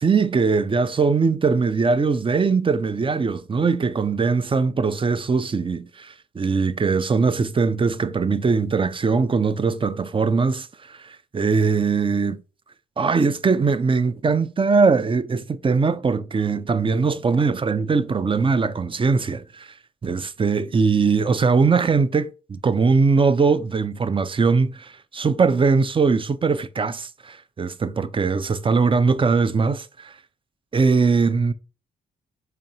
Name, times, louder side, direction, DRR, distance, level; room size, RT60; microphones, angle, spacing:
voice 1, 0.0-12.4 13.0-19.7 20.0-30.1 30.7-31.5, right 4 dB, 25° right, 0.5 m, -21 dB
4.3 x 2.9 x 2.7 m
supercardioid pair, 50°, 19 cm